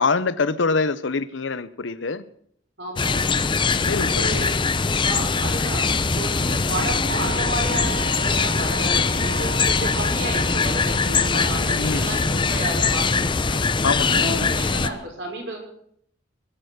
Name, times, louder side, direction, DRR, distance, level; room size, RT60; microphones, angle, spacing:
voice 1, 0.0-2.2 3.8-4.4 11.8-12.1 13.8-14.2, left 4 dB, 80° left, 16 dB, 0.8 m, -24 dB
voice 2, 2.8-3.2 4.0-4.5 5.0-13.6 14.0-15.6, right 2 dB, 65° right, 0 dB, 5.6 m, -32 dB
sound 1, 3.0-14.9, left 4 dB, 25° left, 0.6 m, -22 dB
Wind instrument woodwind instrument, 7.1-11.5, right 2 dB, 85° right, 7.6 m, -35 dB
21.0 x 9.0 x 6.6 m, 0.67 s
head